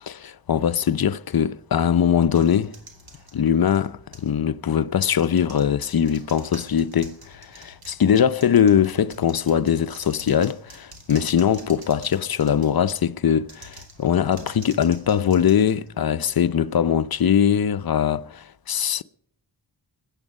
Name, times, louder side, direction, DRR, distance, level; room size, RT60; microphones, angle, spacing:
voice 1, 0.0-2.8 3.3-19.0, left 8 dB, 50° left, 0.6 m, -21 dB
sound 1, 2.3-4.4 5.0-12.9 13.4-16.3, right 1 dB, 50° right, 3.0 m, -47 dB
22.0 x 8.9 x 5.3 m
cardioid pair, 70°, 46 cm